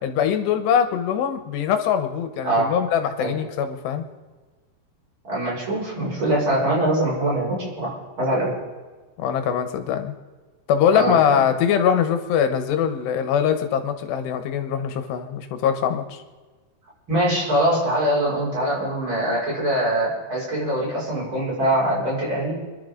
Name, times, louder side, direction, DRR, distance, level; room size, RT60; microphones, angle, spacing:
voice 1, 0.0-4.1 9.2-10.1 10.7-16.2, left 8 dB, 90° left, 8 dB, 3.3 m, -22 dB
voice 2, 5.2-8.6 10.9-11.2 17.1-22.6, right 1 dB, 30° right, -6 dB, 7.0 m, -23 dB
29.5 x 11.5 x 3.9 m, 1.3 s
omnidirectional pair, 4.8 m